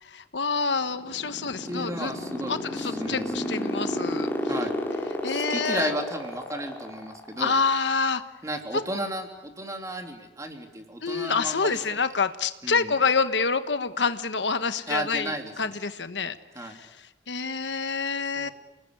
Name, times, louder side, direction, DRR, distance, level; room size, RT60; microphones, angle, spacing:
voice 1, 0.0-2.1 2.5-4.3 5.2-5.9 7.4-8.2 11.0-16.9 17.3-18.5, left 4 dB, 90° left, 10 dB, 1.3 m, -27 dB
sound 1, 0.9-7.4, equal, 15° left, 3.9 m, -30 dB
voice 2, 1.6-3.5 4.5-4.7 5.3-7.5 8.4-11.8 12.6-12.9 14.9-15.8 16.5-16.8 18.4-18.5, right 1 dB, 20° right, 4 dB, 3.1 m, -34 dB
29.5 x 19.5 x 9.8 m, 1.0 s
head